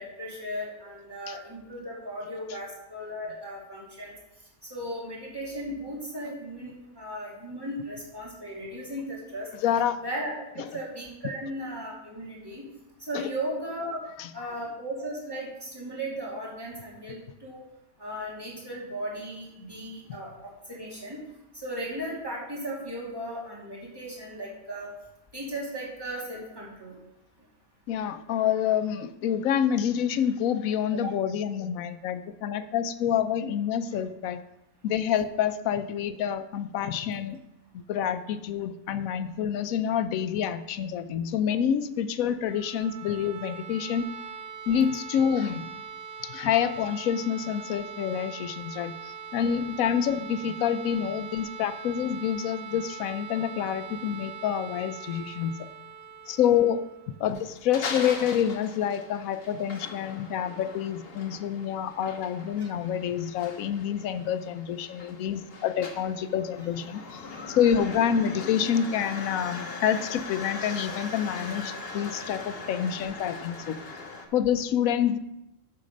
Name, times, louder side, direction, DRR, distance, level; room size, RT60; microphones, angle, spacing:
voice 1, 0.0-4.1 4.7-9.5 10.0-12.6 13.0-14.0 14.3-17.6 18.0-21.2 21.5-24.9 25.3-26.9 30.9-31.0 62.6-62.7, right 1 dB, 15° right, -5 dB, 2.5 m, -36 dB
voice 2, 9.6-10.0 10.6-10.7 13.1-13.3 14.2-14.5 27.9-34.4 34.8-37.4 37.7-44.0 44.7-45.7 46.2-55.6 56.3-56.8 57.2-67.2 67.5-73.8 74.3-75.2, left 9 dB, 85° left, 11 dB, 1.0 m, -27 dB
sound 1, 42.3-58.1, right 7 dB, 45° right, 1.2 m, -42 dB
sound 2, 57.3-74.3, left 3 dB, 50° left, 1.1 m, -40 dB
7.3 x 6.8 x 5.1 m, 0.87 s
omnidirectional pair, 1.4 m